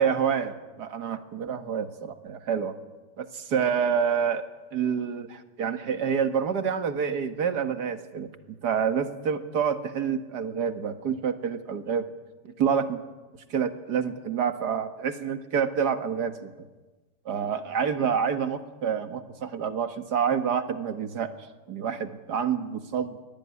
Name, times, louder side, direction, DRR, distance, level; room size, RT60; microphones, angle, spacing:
voice 1, 0.0-2.7 3.2-4.4 4.7-12.0 12.4-13.0 13.5-16.5 17.3-21.3 21.7-23.2, right 7 dB, 75° right, 8 dB, 2.1 m, -28 dB
24.5 x 18.0 x 9.7 m, 1.2 s
omnidirectional pair, 1.8 m